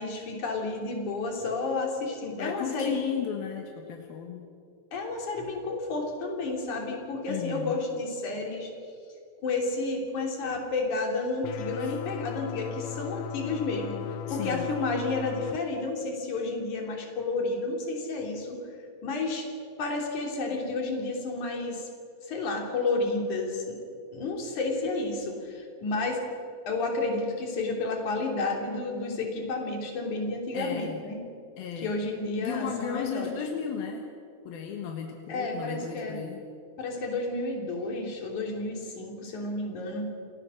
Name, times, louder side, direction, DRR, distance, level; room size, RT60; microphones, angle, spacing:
voice 1, 0.0-2.9 4.9-8.7 9.4-14.0 14.3-18.6 19.0-19.5 19.8-21.9 22.2-23.8 24.1-26.2 26.7-31.2 31.8-33.4 35.3-36.2 36.8-40.1, left 3 dB, 40° left, 1 dB, 4.0 m, -31 dB
voice 2, 2.3-4.5 7.3-7.8 11.8-12.0 14.3-14.8 30.5-31.0 31.6-32.0 32.4-34.1 34.5-36.4, left 8 dB, 65° left, 3 dB, 2.4 m, -35 dB
sound 1, 11.4-15.6, left 13 dB, 80° left, 3.3 m, -37 dB
28.5 x 18.5 x 6.4 m, 2.4 s
omnidirectional pair, 5.9 m